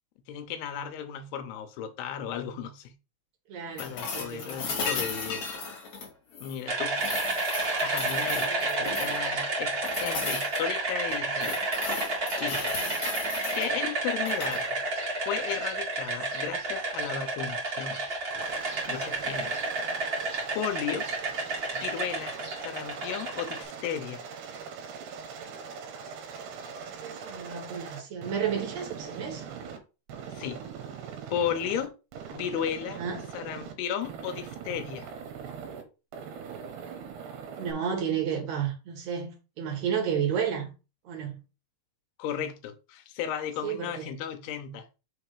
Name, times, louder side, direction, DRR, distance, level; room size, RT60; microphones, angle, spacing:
voice 1, 0.3-2.9 3.8-5.4 6.4-7.0 7.8-11.6 12.4-13.0 13.6-14.8 15.3-18.0 18.9-19.6 20.5-21.1 21.7-22.4 22.6-24.2 30.3-30.6 31.3-31.9 32.3-33.0 33.3-35.1 42.2-44.9, left 9 dB, 80° left, 2.8 m, -34 dB
voice 2, 3.5-4.5 8.5-9.0 12.9-13.0 26.9-29.4 32.9-33.3 37.6-40.7 41.0-41.4 43.6-44.2, right 8 dB, 50° right, 2.5 m, -32 dB
sound 1, 3.8-6.6 7.0-9.3 9.8-10.6 11.1-13.7 14.2-14.6 16.6-16.7, left 4 dB, 50° left, 3.0 m, -35 dB
sound 2, 6.7-23.6, right 2 dB, 30° right, 1.7 m, -31 dB
Aircraft, 18.3-29.8 30.1-31.9 32.1-33.7 34.0-35.8 36.1-37.7, right 6 dB, 85° right, 3.3 m, -41 dB
6.6 x 3.5 x 4.9 m
omnidirectional pair, 4.8 m